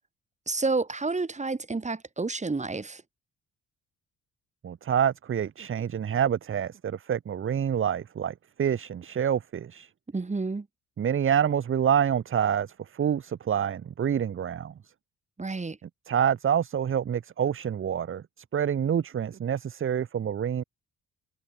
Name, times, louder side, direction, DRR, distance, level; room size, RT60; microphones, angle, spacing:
voice 1, 0.5-3.0 10.1-10.7 15.4-15.8, right 3 dB, 25° right, 4.9 m, -30 dB
voice 2, 4.6-9.9 11.0-14.7 16.1-18.2 18.5-20.6, right 8 dB, 45° right, 1.1 m, -27 dB
cardioid pair, 90°, 30 cm